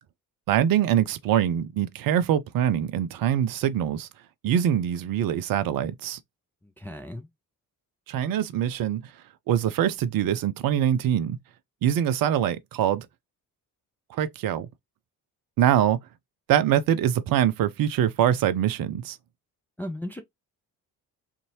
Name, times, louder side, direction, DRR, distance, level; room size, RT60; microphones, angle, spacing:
voice 1, 0.5-4.1 4.4-6.2 8.1-9.1 9.5-11.4 11.8-13.1 14.1-14.7 15.6-16.0 16.5-19.2, right 10 dB, 45° right, 0.6 m, -24 dB
voice 2, 6.6-7.3 19.8-20.2, left 1 dB, 5° left, 0.4 m, -36 dB
2.6 x 2.6 x 2.9 m
figure-of-eight pair, 45°, 48 cm